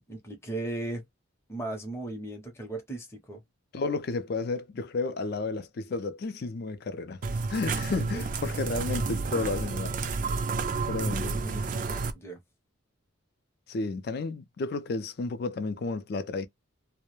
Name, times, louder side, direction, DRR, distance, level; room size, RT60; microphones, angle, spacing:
voice 1, 0.1-1.0 1.5-3.4 7.9-8.3 11.0-12.4, right 2 dB, 10° left, 0.6 m, -37 dB
voice 2, 3.7-7.2 7.5-10.1 10.9-11.3 13.7-16.5, left 3 dB, 50° left, 0.4 m, -32 dB
sound 1, 7.2-12.1, right 4 dB, 40° right, 0.3 m, -30 dB
2.2 x 2.0 x 3.0 m
head